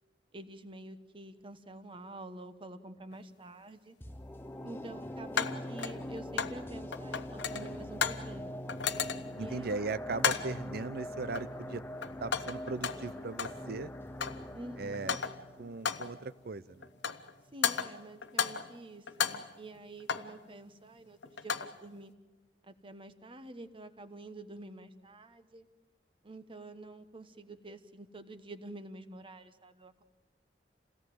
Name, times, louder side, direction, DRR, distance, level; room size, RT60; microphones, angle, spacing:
voice 1, 0.3-3.9 4.6-8.5 9.4-9.7 14.5-15.2 17.5-22.1 22.6-25.7 26.2-30.0, right 2 dB, 30° right, 10 dB, 1.2 m, -48 dB
sound 1, 3.1-3.2 5.4-6.6 6.9-8.3 8.7-9.4 10.2-10.6 11.3-11.7 12.0-13.6 13.9-14.5 14.9-15.5 15.9-16.2 16.8-17.3 17.6-18.8 19.1-20.4 21.2-21.8, left 7 dB, 85° left, 0.9 m, -34 dB
sound 2, 4.0-17.1 17.4-17.5, left 1 dB, 15° left, 0.8 m, -43 dB
voice 2, 9.4-11.8 12.2-13.9 14.8-15.2 15.6-16.9, right 3 dB, 60° right, 17 dB, 0.6 m, -38 dB
27.5 x 17.5 x 7.8 m, 1.3 s
head